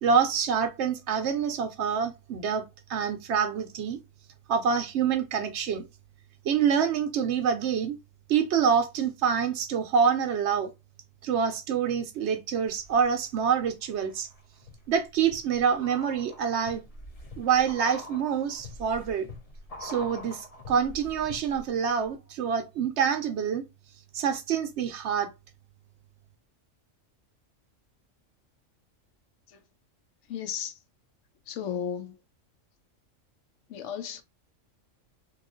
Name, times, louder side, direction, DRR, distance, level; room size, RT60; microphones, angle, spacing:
voice 1, 0.0-2.6 2.9-4.0 4.5-5.9 6.4-8.0 8.3-10.7 11.2-14.3 14.9-16.8 17.4-19.3 19.8-23.6 24.1-25.3, right 7 dB, 70° right, 0.8 m, -26 dB
sound 1, 12.7-13.4 13.9-21.8 22.0-22.1, left 2 dB, 40° left, 0.5 m, -45 dB
voice 2, 30.3-30.8 31.5-32.2 33.7-34.2, left 8 dB, 70° left, 0.9 m, -34 dB
3.0 x 2.4 x 3.7 m
omnidirectional pair, 1.3 m